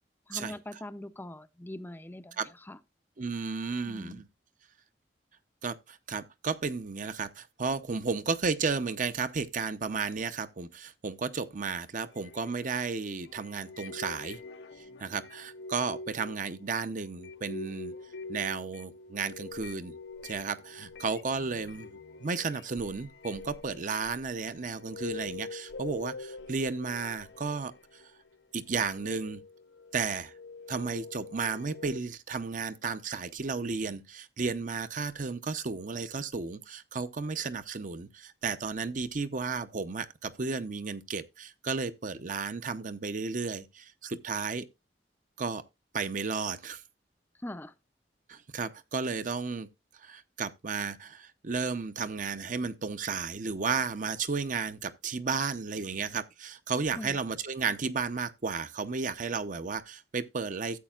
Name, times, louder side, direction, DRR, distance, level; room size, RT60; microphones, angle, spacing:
voice 1, 0.3-2.4 2.7-2.8 3.9-4.2 47.4-47.7 57.0-57.2, left 1 dB, 10° left, 0.5 m, -41 dB
voice 2, 3.2-4.3 5.6-14.4 15.0-17.9 18.3-20.0 20.2-28.0 28.5-29.4 29.9-30.3 30.7-44.7 45.4-45.6 45.9-46.8 48.3-49.7 50.0-60.8, right 4 dB, 45° right, 0.7 m, -33 dB
sound 1, 12.1-28.4 28.8-32.0, left 3 dB, 70° left, 0.6 m, -45 dB
13.0 x 8.1 x 2.4 m
head